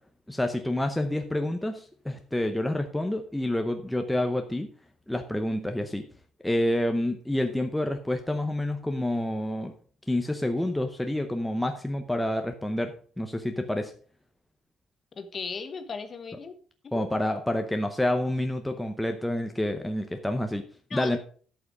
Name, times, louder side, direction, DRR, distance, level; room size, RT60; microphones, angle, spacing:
voice 1, 0.3-4.7 5.1-6.1 6.4-9.7 10.1-13.9 16.9-20.6 20.9-21.2, left 1 dB, 5° left, 5 dB, 0.7 m, -28 dB
voice 2, 15.2-16.5 16.8-17.1 20.9-21.2, left 5 dB, 35° left, 9 dB, 1.1 m, -37 dB
12.0 x 5.7 x 4.9 m, 0.44 s
cardioid pair, 150°, 0 cm